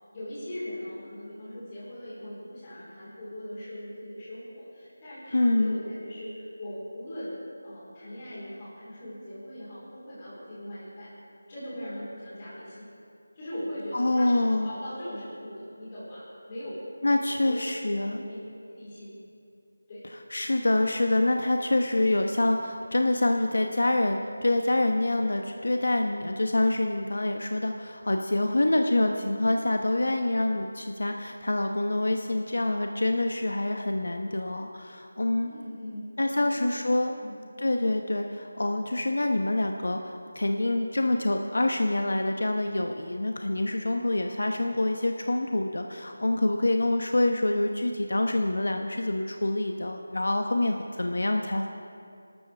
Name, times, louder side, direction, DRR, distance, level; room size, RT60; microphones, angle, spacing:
voice 1, 0.1-7.3 7.6-11.2 11.5-13.0 13.4-16.8 17.4-17.7 18.2-18.4 18.7-19.1 19.9-20.0 35.4-36.8 37.2-37.3, left 1 dB, 15° left, -10 dB, 4.1 m, -40 dB
voice 2, 5.3-5.8 13.9-14.7 17.0-18.2 20.3-35.5 36.2-37.1 37.6-51.7, left 2 dB, 70° left, 4 dB, 1.0 m, -26 dB
26.0 x 13.0 x 3.4 m, 2.4 s
figure-of-eight pair, 180°, 0 cm